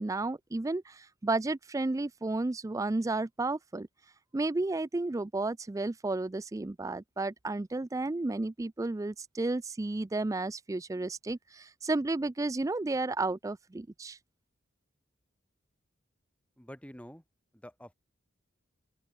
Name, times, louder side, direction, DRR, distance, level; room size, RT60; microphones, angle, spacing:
voice 1, 0.0-3.9 4.3-14.2, right 2 dB, 15° right, 0.4 m, -32 dB
voice 2, 16.6-17.2 17.5-17.9, equal, 5° left, 3.8 m, -47 dB
open air
head